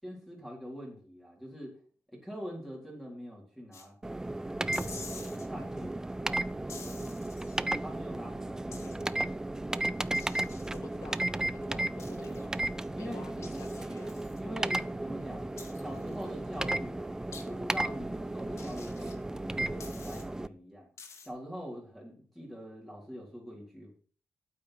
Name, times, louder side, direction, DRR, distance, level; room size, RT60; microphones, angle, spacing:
voice 1, 0.0-1.8 2.1-4.0 4.7-5.9 6.3-9.9 12.9-13.2 14.4-20.9 21.2-23.9, equal, 5° left, -3 dB, 3.9 m, -44 dB
sound 1, 3.7-3.9 4.7-5.5 6.7-7.6 8.7-9.0 10.1-10.8 12.0-12.5 13.4-14.4 15.6-16.2 17.3-17.4 18.6-19.2 19.8-20.2 21.0-21.3, left 5 dB, 65° left, 2.1 m, -48 dB
sound 2, 4.0-20.5, right 2 dB, 10° right, 0.4 m, -34 dB
voice 2, 8.8-9.2 10.7-12.5 13.0-14.2, left 5 dB, 85° left, 8 dB, 1.9 m, -50 dB
9.0 x 8.5 x 5.9 m, 0.42 s
wide cardioid pair, 115°, 5 cm